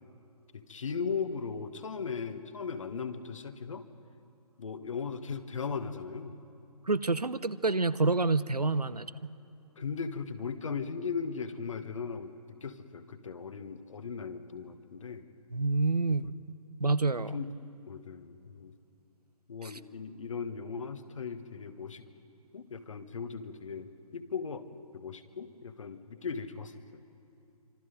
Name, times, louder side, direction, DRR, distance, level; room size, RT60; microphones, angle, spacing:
voice 1, 0.5-3.9 4.6-6.4 8.9-9.0 9.8-15.3 16.2-16.3 17.3-17.5 17.9-18.7 19.5-22.0 22.5-24.6 24.9-27.0, left 5 dB, 55° left, 10 dB, 1.4 m, -38 dB
voice 2, 6.9-9.3 15.5-16.3 16.8-17.4 19.6-19.7, right 3 dB, 85° right, 16 dB, 0.8 m, -28 dB
27.0 x 25.0 x 5.2 m, 2.7 s
figure-of-eight pair, 135°, 19 cm